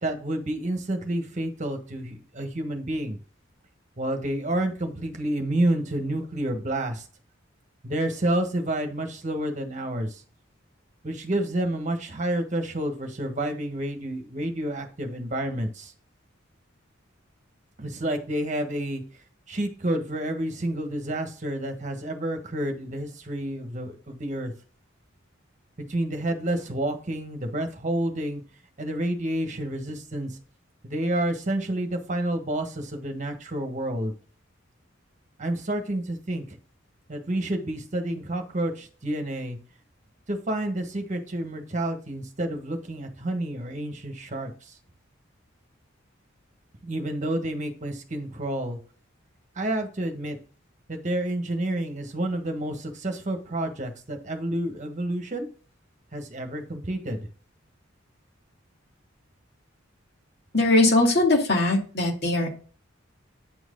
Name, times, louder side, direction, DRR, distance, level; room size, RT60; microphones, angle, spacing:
voice 1, 0.0-3.2 4.0-7.0 7.8-10.2 11.0-15.9 17.8-19.0 19.5-24.5 25.9-28.4 28.8-30.4 30.8-34.1 35.4-36.4 37.1-39.6 40.3-44.7 46.8-48.8 49.5-50.4 50.9-55.5 56.1-57.2, right 1 dB, 35° right, 5 dB, 1.5 m, -29 dB
voice 2, 60.5-62.5, left 2 dB, 55° left, 0 dB, 2.4 m, -20 dB
9.0 x 4.6 x 3.8 m, 0.39 s
head